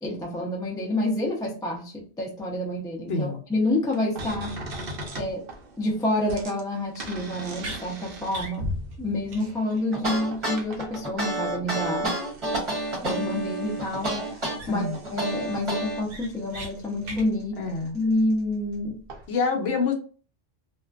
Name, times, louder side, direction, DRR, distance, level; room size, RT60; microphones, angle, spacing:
voice 1, 0.0-4.5 5.2-5.4 5.8-8.7 9.0-12.1 13.0-14.9 15.1-17.6 17.9-19.0, left 1 dB, 5° left, -1 dB, 0.3 m, -28 dB
voice 2, 3.1-3.4 14.7-15.0 17.6-17.9 19.3-19.9, left 4 dB, 65° left, 2 dB, 0.8 m, -26 dB
sound 1, 3.9-11.2 11.8-18.8 19.1-19.3, equal, 60° right, 0.7 m, -40 dB
sound 2, 7.6-7.8 8.3-8.6 8.9-9.0 9.3-9.4 9.7-9.8 14.0-14.1 14.6-14.9 15.3-15.4 15.8-16.7 17.0-17.3, right 2 dB, 85° right, 1.1 m, -38 dB
sound 3, 9.9-16.0, right 1 dB, 30° right, 0.8 m, -29 dB
2.4 x 2.1 x 2.3 m, 0.39 s
omnidirectional pair, 1.2 m